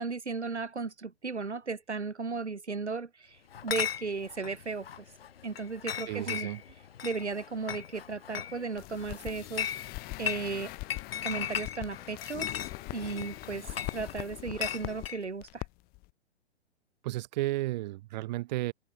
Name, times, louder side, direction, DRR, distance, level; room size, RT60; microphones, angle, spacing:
voice 1, 0.0-5.0 5.4-6.5 7.0-9.7 10.2-10.7 11.2-12.5 12.9-13.6 13.9-15.7, right 4 dB, 80° right, 1.6 m, -35 dB
Chatter / Chink clink, 3.5-15.2, left 9 dB, 60° left, 1.2 m, -38 dB
voice 2, 6.1-6.6 17.0-18.7, right 17 dB, 40° right, 2.5 m, -33 dB
sound 1, 8.8-15.1 15.4-15.7 15.9-16.1, left 23 dB, 25° left, 2.7 m, -42 dB
figure-of-eight pair, 115°, 33 cm